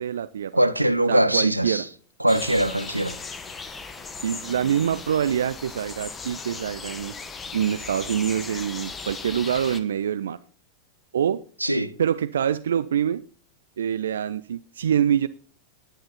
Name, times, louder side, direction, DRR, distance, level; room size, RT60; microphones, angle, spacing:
voice 1, 0.0-0.5 1.1-1.9 4.2-7.1 7.5-10.4 11.1-11.4 12.0-13.2 13.8-15.3, right 9 dB, 65° right, 0.5 m, -25 dB
voice 2, 0.5-1.8 2.2-3.1 11.6-11.9, right 1 dB, 85° right, 0.9 m, -22 dB
sound 1, 2.3-9.8, left 4 dB, 15° left, 1.5 m, -37 dB
17.5 x 10.5 x 4.1 m
figure-of-eight pair, 90°, 0 cm